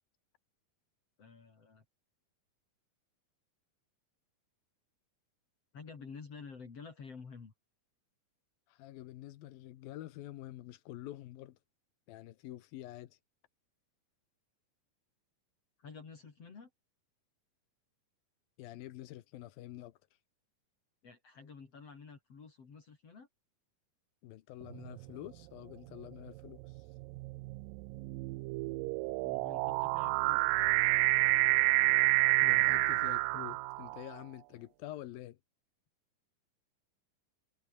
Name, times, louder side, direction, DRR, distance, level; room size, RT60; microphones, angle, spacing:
voice 1, 1.2-1.8 5.7-7.5 15.8-16.7 21.0-23.3 29.2-30.4, left 5 dB, 45° left, 4.1 m, -50 dB
voice 2, 8.7-11.6 12.1-13.2 18.6-20.0 24.2-26.8 32.4-35.4, left 14 dB, 90° left, 3.0 m, -47 dB
sound 1, 24.7-25.1 25.9-34.2, right 22 dB, 80° right, 2.1 m, -29 dB
omnidirectional pair, 4.0 m